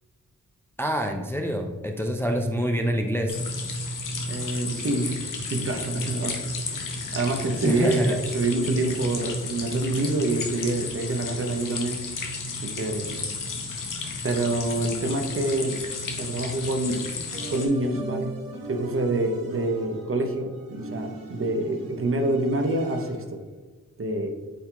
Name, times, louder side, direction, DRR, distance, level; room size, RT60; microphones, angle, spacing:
voice 1, 0.8-3.4 7.6-8.2, equal, 5° left, 3 dB, 0.4 m, -26 dB
sound 1, 3.3-17.7, left 3 dB, 65° left, 0.8 m, -33 dB
voice 2, 4.3-6.4 6.7-12.0 12.6-13.2 14.2-15.8 16.0-17.1 17.5-18.3 18.7-23.4 24.0-24.3, right 2 dB, 40° right, 4 dB, 0.7 m, -27 dB
sound 2, 17.3-23.4, right 1 dB, 75° right, 1.1 m, -39 dB
7.7 x 2.8 x 2.3 m, 1.3 s
cardioid pair, 50°, 34 cm